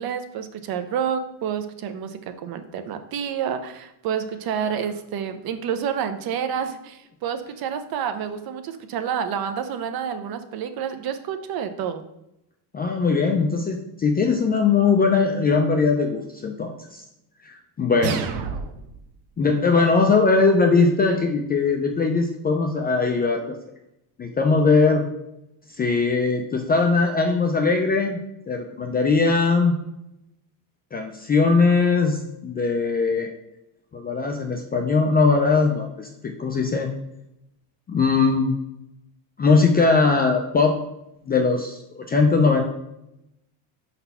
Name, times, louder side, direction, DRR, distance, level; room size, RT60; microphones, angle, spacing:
voice 1, 0.0-12.0, right 8 dB, 50° right, 9 dB, 0.6 m, -29 dB
voice 2, 12.7-17.0 17.4-18.2 19.4-23.4 24.2-25.0 25.8-28.2 28.5-29.7 30.9-33.3 33.9-36.9 37.9-38.5 39.4-40.7 41.3-42.6, left 4 dB, 20° left, 3 dB, 0.3 m, -20 dB
sound 1, 18.0-19.0, right 6 dB, 90° right, 0.8 m, -29 dB
5.6 x 4.2 x 5.4 m, 0.86 s
cardioid pair, 155°, 48 cm